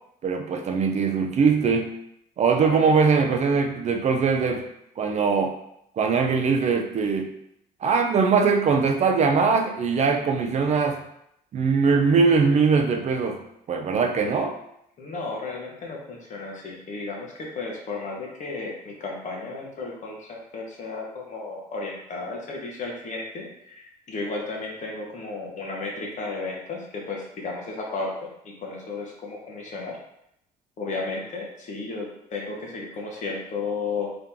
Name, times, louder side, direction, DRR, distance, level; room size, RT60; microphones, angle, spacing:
voice 1, 0.2-1.9 2.4-4.7 5.0-5.5 6.0-7.3 7.8-11.0 11.5-13.4 13.7-14.5, right 5 dB, 40° right, 4 dB, 0.5 m, -21 dB
voice 2, 2.6-2.9 14.1-14.4 15.0-30.0 30.8-34.1, left 3 dB, 45° left, -1 dB, 1.2 m, -34 dB
3.7 x 2.9 x 3.6 m, 0.77 s
cardioid pair, 110°, 17 cm